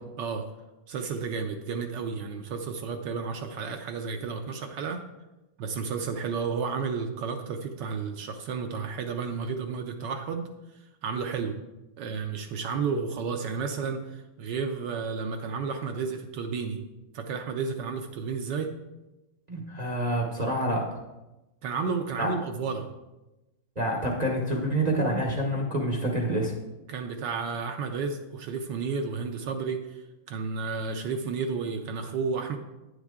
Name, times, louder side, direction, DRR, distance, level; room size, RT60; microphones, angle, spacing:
voice 1, 0.9-5.0 5.6-10.5 11.0-11.5 12.0-16.8 17.1-18.7 21.6-22.9 26.9-32.6, right 5 dB, 70° right, 5 dB, 1.2 m, -32 dB
voice 2, 19.5-21.0 22.2-22.3 23.8-26.5, right 1 dB, 35° right, -1 dB, 0.6 m, -27 dB
9.8 x 7.3 x 3.6 m, 1.0 s
omnidirectional pair, 2.3 m